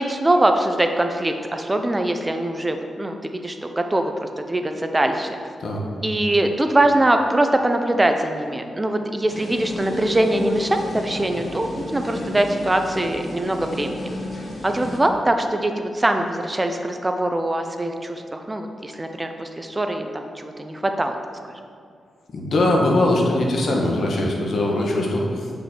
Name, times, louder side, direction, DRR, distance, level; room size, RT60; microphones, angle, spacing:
voice 1, 0.0-5.4 6.0-14.0 14.6-21.2 21.5-21.6, right 1 dB, 20° right, 5 dB, 0.6 m, -22 dB
sound 1, 9.3-15.0, left 1 dB, 45° left, 1.8 m, -33 dB
voice 2, 22.3-25.6, left 1 dB, 65° left, -1 dB, 1.4 m, -21 dB
8.2 x 5.3 x 4.5 m, 2.3 s
cardioid pair, 65°, 0 cm